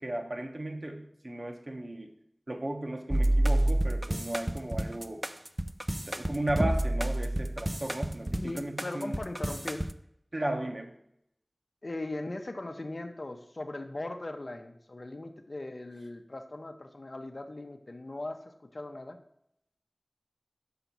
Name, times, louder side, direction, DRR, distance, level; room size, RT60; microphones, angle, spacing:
voice 1, 0.0-2.1 2.5-5.2 6.1-9.1 10.3-10.9, right 1 dB, 55° right, 3 dB, 1.0 m, -35 dB
sound 1, 3.1-9.9, right 1 dB, 25° right, 0.4 m, -29 dB
voice 2, 8.3-9.9 11.8-19.2, left 2 dB, 65° left, 6 dB, 0.6 m, -39 dB
5.8 x 4.0 x 5.9 m, 0.76 s
wide cardioid pair, 40°, 0 cm